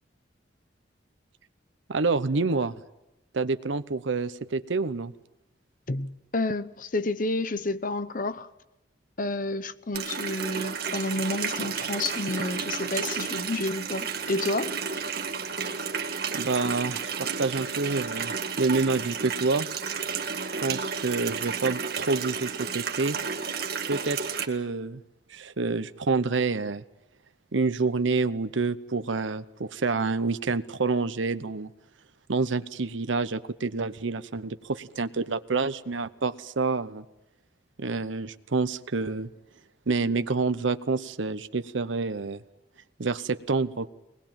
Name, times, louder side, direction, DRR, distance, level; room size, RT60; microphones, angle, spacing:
voice 1, 1.9-2.7 3.3-5.1 16.3-18.3 18.6-19.7 20.6-23.2 23.9-24.2 24.5-25.0 25.3-26.8 27.5-31.7 32.3-37.0 37.8-39.3 39.9-42.4 43.0-43.9, right 4 dB, 85° right, 0.8 m, -28 dB
voice 2, 5.9-8.5 9.2-14.7, left 2 dB, 45° left, 0.9 m, -30 dB
Water tap faucet, 9.9-24.4, right 6 dB, 55° right, 1.9 m, -32 dB
23.0 x 20.0 x 8.9 m
head